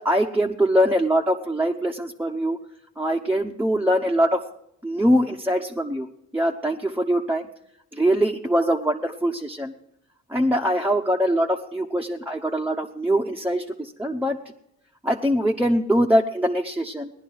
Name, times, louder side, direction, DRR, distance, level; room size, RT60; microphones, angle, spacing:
voice 1, 0.0-2.6 3.0-4.4 4.8-6.1 6.3-7.5 7.9-9.7 10.3-14.4 15.0-17.1, equal, 5° right, 0 dB, 0.9 m, -23 dB
17.5 x 11.0 x 4.7 m, 0.78 s
cardioid pair, 90°, 30 cm